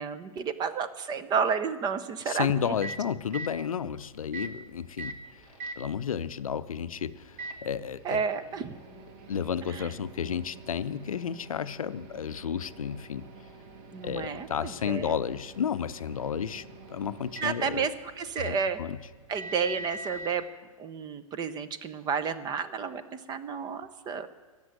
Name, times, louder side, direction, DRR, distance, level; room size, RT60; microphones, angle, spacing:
voice 1, 0.0-2.7 8.0-8.7 9.7-9.9 13.9-15.2 17.4-18.8 19.3-20.4 20.8-24.3, right 6 dB, 25° right, 12 dB, 0.8 m, -31 dB
voice 2, 2.3-5.4 5.8-8.2 9.3-13.3 14.0-16.6 16.9-17.9 18.5-19.0, left 8 dB, 75° left, 14 dB, 0.6 m, -32 dB
Microwave oven, 2.4-20.4, right 2 dB, 40° right, 1.6 m, -45 dB
13.5 x 7.3 x 9.3 m, 1.4 s
figure-of-eight pair, 110°, 18 cm